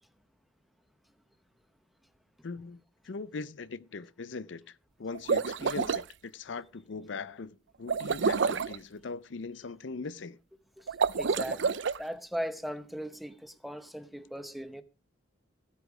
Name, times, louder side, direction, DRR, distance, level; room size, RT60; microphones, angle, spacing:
voice 1, 2.4-2.8 3.0-10.4, left 4 dB, 70° left, 0.6 m, -40 dB
Bubbles Short Bursts, 5.1-6.0 7.9-8.8 10.9-12.0, right 5 dB, 65° right, 0.5 m, -28 dB
voice 2, 11.2-11.6 12.0-14.8, equal, ahead, 0.9 m, -38 dB
15.5 x 8.3 x 4.9 m
head